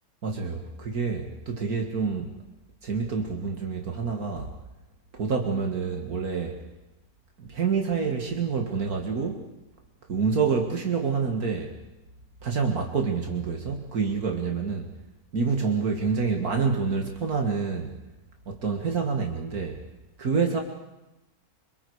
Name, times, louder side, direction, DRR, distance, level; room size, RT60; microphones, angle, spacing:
voice 1, 0.2-2.4 2.8-4.5 5.1-6.6 7.4-9.5 10.1-11.8 12.4-14.9 15.3-18.0 18.5-19.8 20.2-20.6, right 5 dB, 70° right, 3 dB, 2.4 m, -27 dB
27.0 x 26.0 x 4.9 m, 1.0 s
omnidirectional pair, 1.6 m